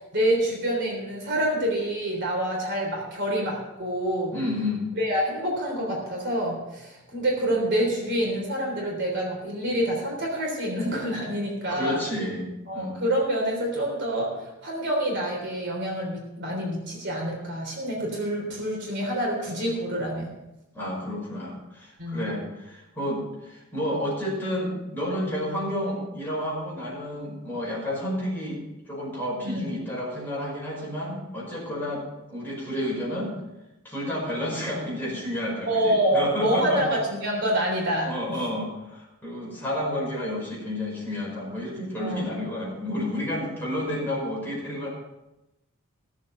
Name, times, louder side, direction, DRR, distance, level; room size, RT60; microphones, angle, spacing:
voice 1, 0.1-4.3 5.0-12.0 12.7-14.3 14.6-20.3 22.0-22.3 29.4-29.7 35.7-38.4 42.0-42.2, right 1 dB, 50° right, -1 dB, 3.5 m, -27 dB
voice 2, 4.3-4.9 11.7-12.5 12.7-13.0 20.7-28.6 28.9-33.3 33.8-37.0 38.0-44.9, left 1 dB, 10° left, -5 dB, 5.3 m, -30 dB
17.0 x 7.3 x 5.4 m, 0.95 s
head